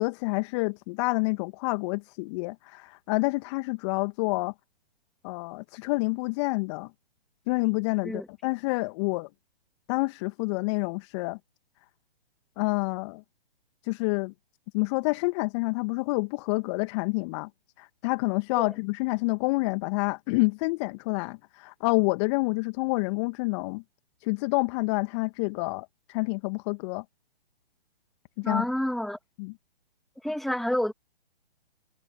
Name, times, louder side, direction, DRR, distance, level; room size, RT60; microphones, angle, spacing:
voice 1, 0.0-4.5 5.2-6.9 7.5-9.3 9.9-11.4 12.6-13.2 13.9-14.3 14.7-17.5 17.8-23.8 24.2-27.0 28.4-28.7 29.4-29.5, left 27 dB, 30° left, 1.9 m, -28 dB
voice 2, 28.4-29.2 30.2-30.9, left 1 dB, ahead, 2.7 m, -28 dB
figure-of-eight pair, 130°, 30 cm